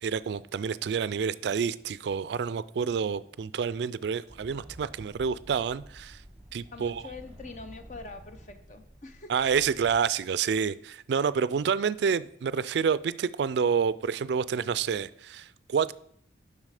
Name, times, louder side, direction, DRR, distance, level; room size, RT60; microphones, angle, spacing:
voice 1, 0.0-6.2 6.5-7.0 9.3-15.9, right 6 dB, 65° right, 0.3 m, -28 dB
sound 1, 4.3-10.0, right 1 dB, 5° right, 1.1 m, -50 dB
voice 2, 6.7-9.3, left 3 dB, 40° left, 0.6 m, -44 dB
7.5 x 5.7 x 4.9 m
head